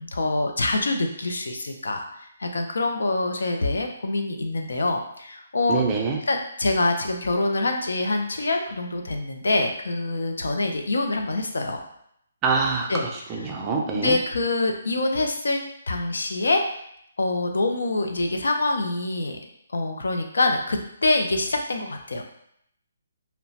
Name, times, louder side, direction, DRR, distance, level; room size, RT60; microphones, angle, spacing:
voice 1, 0.0-2.0 2.4-5.8 6.3-11.8 12.9-13.0 13.9-16.8 17.2-19.4 19.7-22.2, left 2 dB, 85° left, 4 dB, 0.4 m, -25 dB
voice 2, 5.7-6.2 12.4-12.9 13.3-14.2, right 4 dB, 15° right, 0 dB, 0.3 m, -24 dB
2.8 x 2.1 x 2.7 m, 0.73 s
hypercardioid pair, 165°, 0 cm